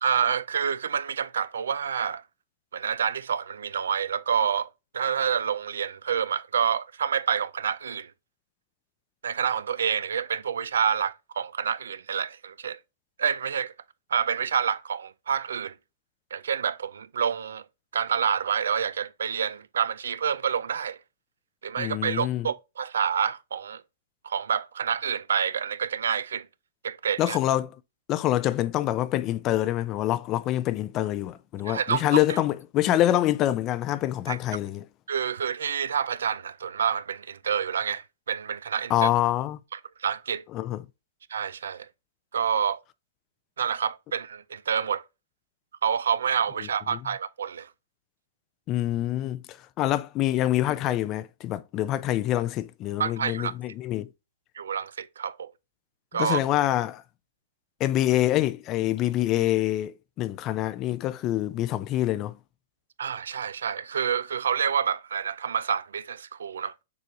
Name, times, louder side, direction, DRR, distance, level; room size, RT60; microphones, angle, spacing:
voice 1, 0.0-2.2 2.7-4.7 4.9-8.1 9.2-12.8 13.2-13.7 14.1-15.8 16.3-17.6 17.9-21.0 21.6-23.8 24.2-26.5 26.8-27.4 31.7-32.4 34.3-34.4 35.1-39.1 39.7-40.4 41.3-41.9 42.3-42.8 43.6-45.0 45.8-47.7 53.0-53.5 54.6-55.5 56.1-56.4 63.0-66.7, right 7 dB, 85° right, 0.3 m, -28 dB
voice 2, 21.8-22.5 27.2-27.7 28.1-34.8 38.9-39.6 40.5-40.8 48.7-54.1 56.1-57.0 57.8-62.4, left 13 dB, 30° left, 0.3 m, -26 dB
6.7 x 2.5 x 3.0 m
hypercardioid pair, 135°, 0 cm